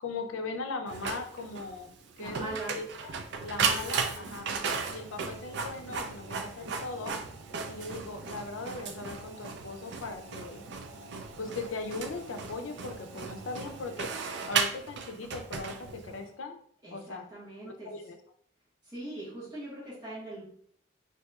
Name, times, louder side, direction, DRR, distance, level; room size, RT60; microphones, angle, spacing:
voice 1, 0.0-3.1 3.4-4.5 4.9-7.2 7.7-10.6 11.4-14.1 14.5-16.6 16.9-17.2 17.6-18.2, left 3 dB, 90° left, 6 dB, 0.5 m, -39 dB
Printer, 0.9-16.2, right 5 dB, 65° right, 0.4 m, -36 dB
voice 2, 2.2-2.8 16.8-17.9 18.8-20.4, right 2 dB, 20° right, -8 dB, 1.3 m, -41 dB
4.0 x 2.7 x 2.3 m, 0.62 s
head